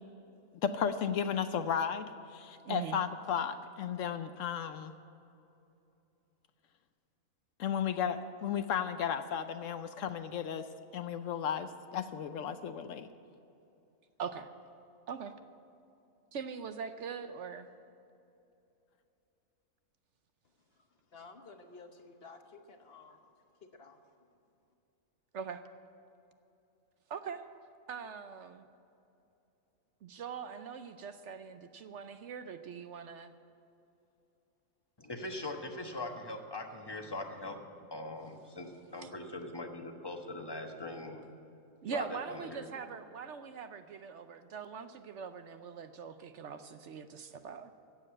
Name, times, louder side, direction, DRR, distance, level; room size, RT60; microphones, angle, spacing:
voice 1, 0.6-4.9 7.6-10.7 10.9-13.1, left 8 dB, 70° left, 10 dB, 1.0 m, -34 dB
voice 2, 2.6-3.0 14.2-14.5 15.1-15.3 16.3-17.7 25.3-25.6 27.1-27.4 27.9-28.6 30.0-33.3 39.0-39.1 41.8-47.7, right 6 dB, 65° right, 9 dB, 0.9 m, -42 dB
voice 3, 21.1-23.2 23.6-24.0, left 4 dB, 50° left, 6 dB, 1.1 m, -53 dB
voice 4, 35.0-41.4 41.9-42.7, left 2 dB, 20° left, 4 dB, 1.1 m, -41 dB
15.5 x 7.7 x 8.8 m, 2.7 s
omnidirectional pair, 1.4 m